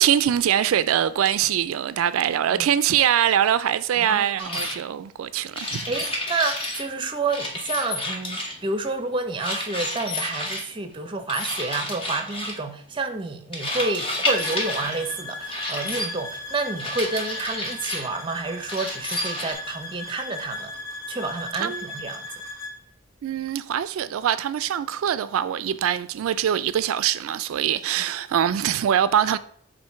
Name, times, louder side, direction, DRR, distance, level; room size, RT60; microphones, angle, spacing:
voice 1, 0.0-5.9 21.5-21.9 23.2-29.4, right 10 dB, 85° right, 0.3 m, -23 dB
voice 2, 4.0-4.7 5.9-20.7 21.1-22.3, right 3 dB, 25° right, 0.6 m, -29 dB
sound 1, 4.4-4.8 5.5-6.9 7.3-8.7 9.4-10.6 11.3-12.6 13.5-15.0 15.5-16.1 16.8-18.1 18.7-19.5, left 1 dB, 25° left, 1.0 m, -30 dB
sound 2, 14.3-22.8, left 2 dB, 70° left, 1.2 m, -37 dB
7.4 x 2.6 x 5.7 m
head